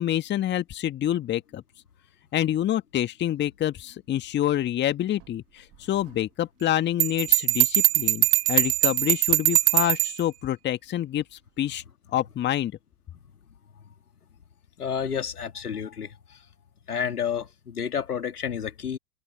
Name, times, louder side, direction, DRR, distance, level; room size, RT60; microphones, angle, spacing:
voice 1, 0.0-1.6 2.3-11.8 12.1-12.7, left 12 dB, 25° left, 1.9 m, -27 dB
Bell, 7.0-10.2, right 18 dB, 30° right, 1.8 m, -21 dB
voice 2, 14.8-16.4 16.9-19.0, left 7 dB, 75° left, 2.5 m, -30 dB
figure-of-eight pair, 105°, 45 cm